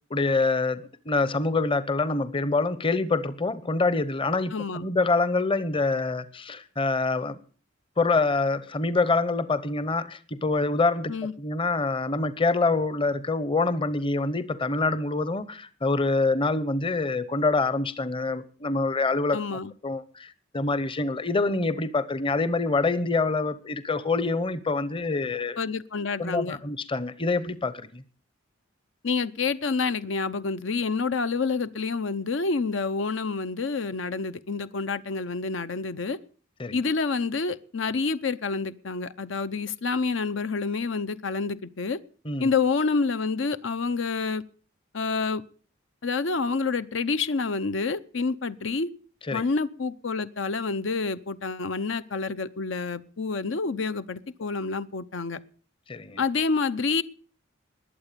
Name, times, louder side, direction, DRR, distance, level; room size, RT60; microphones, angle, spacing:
voice 1, 0.1-7.4 8.0-11.1 11.4-25.6 26.2-28.0 36.6-36.8 42.2-42.5 49.3-49.4 55.9-56.2, left 3 dB, 25° left, 0.9 m, -26 dB
voice 2, 4.5-4.9 11.1-11.3 19.3-19.7 25.6-26.6 29.0-36.2 36.7-42.0 42.4-44.4 44.9-45.4 46.0-48.9 49.3-55.4 56.2-57.0, left 4 dB, 70° left, 0.7 m, -28 dB
21.0 x 8.1 x 6.8 m
head